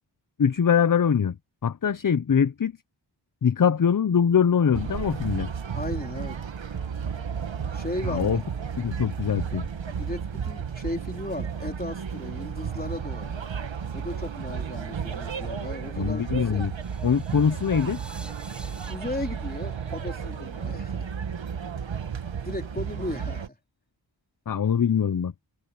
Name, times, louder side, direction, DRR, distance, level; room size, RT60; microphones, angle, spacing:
voice 1, 0.4-1.3 1.6-2.7 3.4-5.5 8.0-8.4 8.8-9.6 16.0-16.7 17.0-18.0 24.5-25.3, left 7 dB, 45° left, 0.8 m, -23 dB
sound 1, 4.7-23.5, right 7 dB, 90° right, 1.8 m, -33 dB
voice 2, 5.7-6.4 7.7-8.4 9.9-13.4 13.9-16.7 18.9-21.1 22.4-23.6, left 1 dB, 20° left, 3.4 m, -36 dB
sound 2, 16.8-20.9, equal, ahead, 4.5 m, -50 dB
cardioid pair, 50°, 44 cm